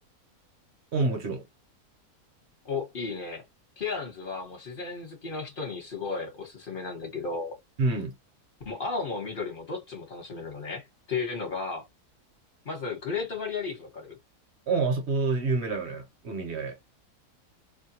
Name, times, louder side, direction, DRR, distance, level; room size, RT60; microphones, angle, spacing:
voice 1, 0.9-1.5 7.8-8.2 14.7-16.8, right 3 dB, 50° right, 1.0 m, -27 dB
voice 2, 2.6-3.4 3.8-7.5 8.6-11.9 12.6-14.2, left 4 dB, 40° left, 1.1 m, -34 dB
2.6 x 2.2 x 2.7 m
omnidirectional pair, 1.6 m